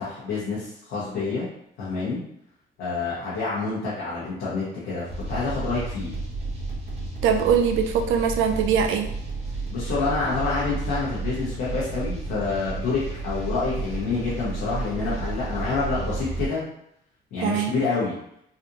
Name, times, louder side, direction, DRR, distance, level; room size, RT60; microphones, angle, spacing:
voice 1, 0.0-1.5 1.8-2.2 2.8-6.1 9.7-16.6 17.3-18.1, left 4 dB, 90° left, -9 dB, 1.2 m, -27 dB
sound 1, 5.1-16.5, right 3 dB, 30° right, 1.1 m, -32 dB
voice 2, 7.2-9.1 17.4-17.7, right 7 dB, 85° right, 5 dB, 0.5 m, -22 dB
4.1 x 2.5 x 2.9 m, 0.74 s
cardioid pair, 90°, 20 cm